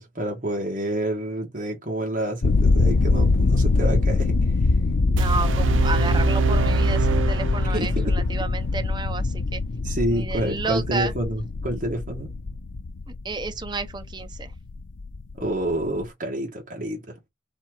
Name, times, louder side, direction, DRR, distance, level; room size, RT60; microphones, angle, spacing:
voice 1, 0.0-4.5 7.7-8.2 9.8-12.3 15.4-17.2, right 1 dB, 45° right, 1.5 m, -28 dB
sound 1, 2.4-16.0, left 3 dB, 85° left, 0.6 m, -23 dB
voice 2, 5.2-9.6 10.1-11.1 13.2-14.5, right 4 dB, 25° right, 0.5 m, -31 dB
sound 2, 5.2-8.2, right 3 dB, 90° right, 0.5 m, -23 dB
4.2 x 2.8 x 4.5 m
head